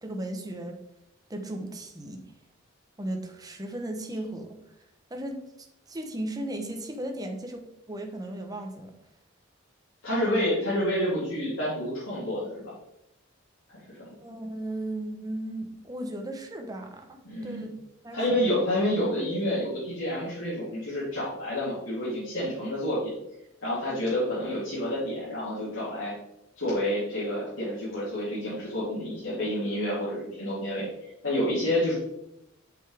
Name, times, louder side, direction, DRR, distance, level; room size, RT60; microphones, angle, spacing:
voice 1, 0.0-0.8 1.3-2.2 3.0-4.6 5.1-7.6 7.9-8.9 14.2-17.7 18.0-18.5, right 1 dB, 20° right, 4 dB, 0.9 m, -36 dB
voice 2, 10.0-12.7 13.9-14.1 17.2-17.6 18.1-23.1 23.6-26.1 26.6-30.9 31.2-31.9, left 1 dB, 85° left, -11 dB, 3.3 m, -29 dB
8.1 x 6.7 x 3.5 m, 0.84 s
head